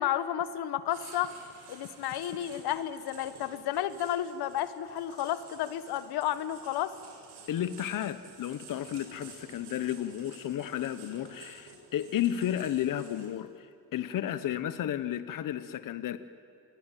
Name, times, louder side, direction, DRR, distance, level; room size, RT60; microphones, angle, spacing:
voice 1, 0.0-1.3 1.7-6.9, left 11 dB, 90° left, 13 dB, 1.5 m, -32 dB
Writing, 0.9-13.5, right 5 dB, 90° right, 7.1 m, -52 dB
voice 2, 7.5-16.2, left 11 dB, 55° left, 12 dB, 1.0 m, -33 dB
27.5 x 22.0 x 9.2 m, 2.6 s
cardioid pair, 125°, 38 cm